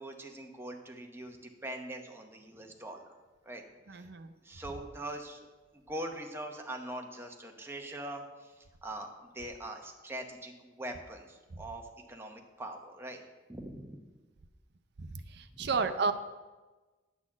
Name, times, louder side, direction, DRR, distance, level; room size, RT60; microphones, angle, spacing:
voice 1, 0.0-3.1 3.5-3.6 3.9-4.1 4.4-5.4 5.7-8.5 8.8-13.2 13.5-14.0 15.6-15.7, right 1 dB, 15° right, 2 dB, 0.9 m, -42 dB
voice 2, 3.9-4.3 11.5-11.6 15.0-16.1, right 4 dB, 60° right, 10 dB, 0.6 m, -32 dB
10.0 x 4.2 x 7.3 m, 1.2 s
head